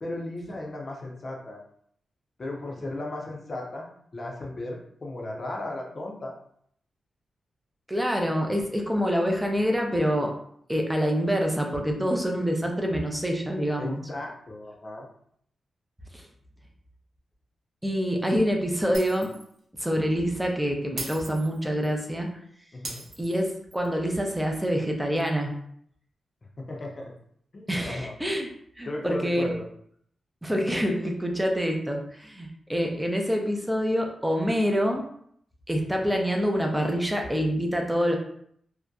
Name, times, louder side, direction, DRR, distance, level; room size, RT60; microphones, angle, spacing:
voice 1, 0.0-1.6 2.4-3.9 4.1-6.3 13.8-15.1 22.7-23.1 26.6-27.1 27.5-28.2 28.9-29.7, left 1 dB, 40° left, 0 dB, 0.5 m, -35 dB
voice 2, 7.9-10.3 10.7-14.0 16.1-16.2 17.8-19.3 19.8-22.3 23.2-25.5 27.7-28.5 28.8-29.5 30.4-35.1 35.7-38.2, equal, 5° right, 1 dB, 0.4 m, -26 dB
Shatter, 18.9-19.5 19.8-20.0 21.0-22.0 22.8-23.9, right 2 dB, 65° right, 0.6 m, -39 dB
2.6 x 2.1 x 2.3 m, 0.65 s
wide cardioid pair, 105°, 0 cm